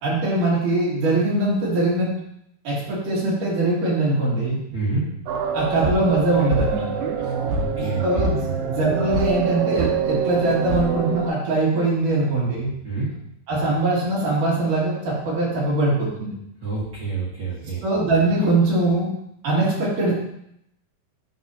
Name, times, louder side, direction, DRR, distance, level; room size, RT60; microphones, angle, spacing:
voice 1, 0.0-2.1 2.7-4.6 5.5-6.9 7.7-12.7 13.5-16.4 17.8-19.1 19.4-20.1, right 2 dB, 65° right, -6 dB, 3.6 m, -22 dB
voice 2, 4.7-5.0 7.2-8.6 12.8-13.1 16.6-17.8, right 3 dB, 50° right, -7 dB, 1.5 m, -28 dB
sound 1, 5.3-11.3, right 5 dB, 85° right, 2.5 m, -25 dB
9.1 x 5.6 x 2.7 m, 0.76 s
omnidirectional pair, 4.0 m